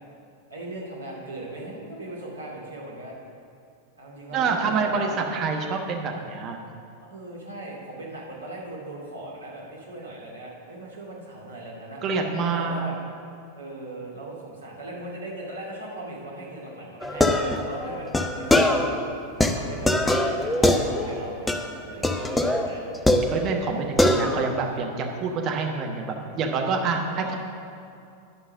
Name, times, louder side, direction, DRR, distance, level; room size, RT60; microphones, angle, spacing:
voice 1, 0.5-3.2 4.0-5.2 7.0-12.0 12.4-13.0 13.5-19.0 19.5-22.8 27.0-27.4, right 2 dB, 75° right, -4 dB, 2.3 m, -38 dB
voice 2, 4.3-6.6 12.0-12.9 23.3-27.4, right 4 dB, 35° right, 2 dB, 1.2 m, -27 dB
sound 1, 17.0-19.0 19.4-21.2 21.5-21.7 22.0-23.7 24.0-24.6, left 1 dB, 10° left, 0.6 m, -23 dB
11.0 x 5.5 x 6.5 m, 2.5 s
figure-of-eight pair, 90°, 0 cm